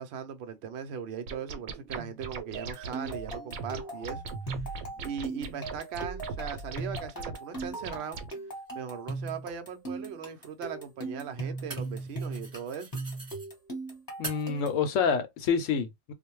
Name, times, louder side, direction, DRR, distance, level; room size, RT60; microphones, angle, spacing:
voice 1, 0.0-4.2 5.0-8.2 8.7-12.9, right 7 dB, 60° right, 0.7 m, -39 dB
sound 1, 1.3-8.3, right 4 dB, 80° right, 1.0 m, -40 dB
sound 2, 2.5-14.9, right 2 dB, 15° left, 0.9 m, -39 dB
sound 3, 8.7-8.8 10.4-13.5 14.2-14.7, right 3 dB, 30° right, 0.9 m, -44 dB
voice 2, 14.2-16.1, left 6 dB, 70° left, 0.9 m, -27 dB
2.5 x 2.1 x 3.0 m
omnidirectional pair, 1.4 m